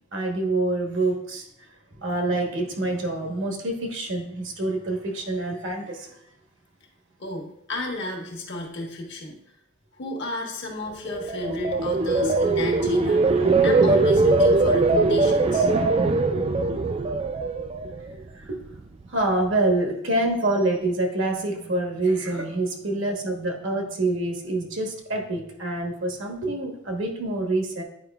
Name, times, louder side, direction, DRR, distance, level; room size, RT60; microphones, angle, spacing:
voice 1, 0.1-1.5 2.0-6.1 18.3-18.6 19.1-27.8, right 2 dB, 65° right, 2 dB, 1.1 m, -26 dB
voice 2, 7.2-9.4 10.0-15.7, left 1 dB, 60° left, 1 dB, 1.2 m, -32 dB
sound 1, 11.0-18.2 18.6-19.0, right 3 dB, 30° right, 0.4 m, -21 dB
9.2 x 4.8 x 2.3 m, 0.76 s
head